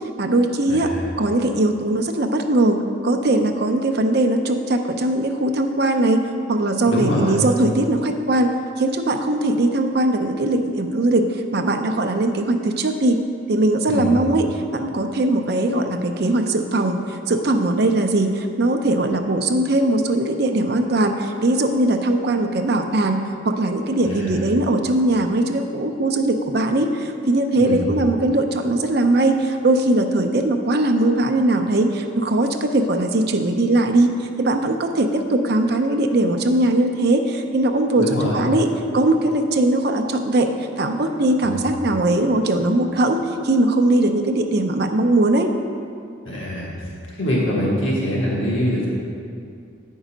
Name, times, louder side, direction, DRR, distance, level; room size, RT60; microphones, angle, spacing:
voice 1, 0.2-0.9 1.2-8.5 8.8-13.2 13.5-38.7 38.9-40.5 40.8-45.5, right 2 dB, 55° right, 5 dB, 0.6 m, -20 dB
voice 2, 6.9-7.4 13.9-14.2 24.0-24.4 27.6-27.9 38.0-38.5 41.4-41.7 46.2-46.7 47.1-48.9, equal, 85° left, -5 dB, 1.6 m, -23 dB
8.1 x 5.4 x 5.1 m, 2.3 s
head